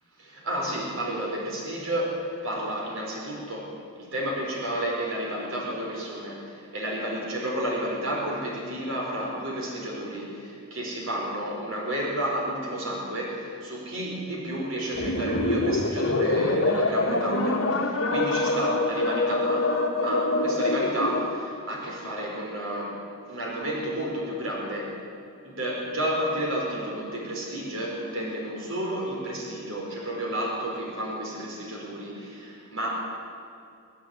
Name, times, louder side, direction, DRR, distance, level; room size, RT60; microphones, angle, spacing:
voice 1, 0.2-3.7 4.0-23.0 23.3-24.9 25.4-32.9, right 1 dB, 70° right, -2 dB, 4.9 m, -31 dB
sound 1, 15.0-21.4, left 2 dB, 75° left, 1.9 m, -25 dB
25.5 x 10.5 x 9.9 m, 2.5 s
head